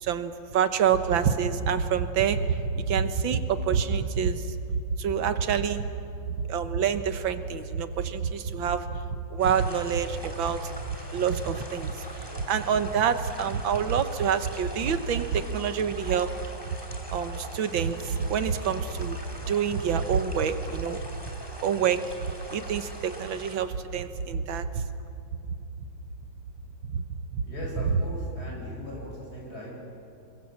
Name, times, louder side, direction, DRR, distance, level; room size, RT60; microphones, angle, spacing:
voice 1, 0.0-4.6 5.0-5.9 6.5-9.0 9.3-10.7 11.1-11.9 12.5-16.3 17.1-19.2 19.5-21.1 21.6-22.0 22.5-24.8 26.9-27.0 27.3-27.4, right 7 dB, 80° right, 10 dB, 1.9 m, -27 dB
sound 1, 9.4-23.5, left 1 dB, 10° left, 2.7 m, -43 dB
voice 2, 27.4-29.7, left 1 dB, 50° left, -3 dB, 7.7 m, -39 dB
27.5 x 23.5 x 7.3 m, 2.6 s
omnidirectional pair, 2.1 m